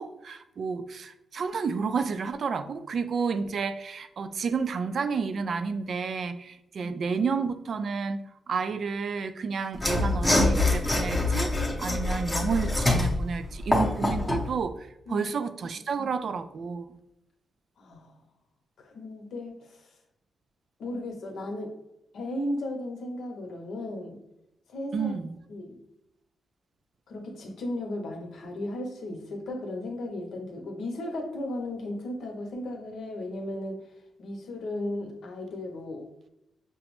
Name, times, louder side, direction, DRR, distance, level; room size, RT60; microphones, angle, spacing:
voice 1, 0.0-8.2 8.5-11.5 11.8-17.0 24.9-25.4, right 5 dB, 55° right, 10 dB, 0.3 m, -30 dB
Mechanisms / Sawing, 9.7-14.5, left 2 dB, 15° left, 0.7 m, -25 dB
voice 2, 17.8-18.2 18.8-19.8 20.8-21.7 22.1-24.2 24.7-25.1 25.5-25.8 27.1-33.8 34.2-36.1, left 1 dB, 75° left, 2 dB, 0.8 m, -35 dB
5.8 x 2.0 x 3.0 m, 0.86 s
wide cardioid pair, 130°, 0 cm